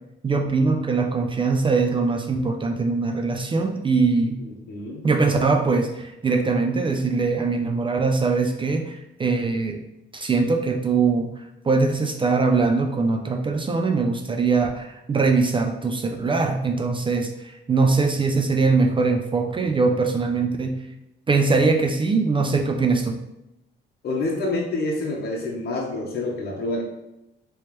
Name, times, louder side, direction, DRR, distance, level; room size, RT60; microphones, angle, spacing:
voice 1, 0.2-4.4 5.0-9.8 10.1-20.8 21.3-23.2, right 4 dB, 25° right, 4 dB, 0.4 m, -22 dB
voice 2, 4.7-5.1 24.0-26.8, left 2 dB, 55° left, -1 dB, 0.9 m, -27 dB
3.1 x 3.0 x 3.1 m, 0.88 s
cardioid pair, 90°, 20 cm